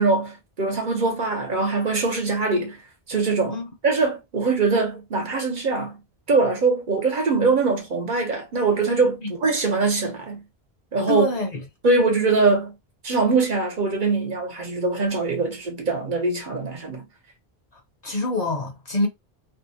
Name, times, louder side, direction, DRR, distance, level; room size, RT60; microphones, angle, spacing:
voice 1, 0.0-2.8 3.1-3.6 3.8-6.0 6.3-10.4 10.9-11.3 11.8-12.7 13.0-17.0, right 3 dB, 55° right, 0.9 m, -22 dB
voice 2, 11.1-11.6 18.0-19.1, left 2 dB, 45° left, 0.7 m, -25 dB
2.6 x 2.1 x 2.7 m
omnidirectional pair, 1.0 m